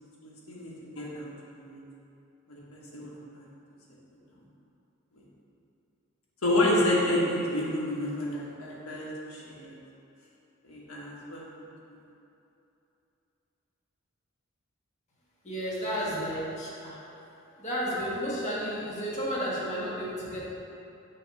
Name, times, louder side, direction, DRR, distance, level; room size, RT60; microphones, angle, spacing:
voice 1, 0.2-1.8 2.5-3.5 6.4-9.7 10.6-11.4, left 1 dB, 90° left, -5 dB, 1.3 m, -30 dB
voice 2, 15.4-17.3 17.6-20.5, equal, 35° left, -7 dB, 1.4 m, -32 dB
6.8 x 3.0 x 5.8 m, 2.9 s
head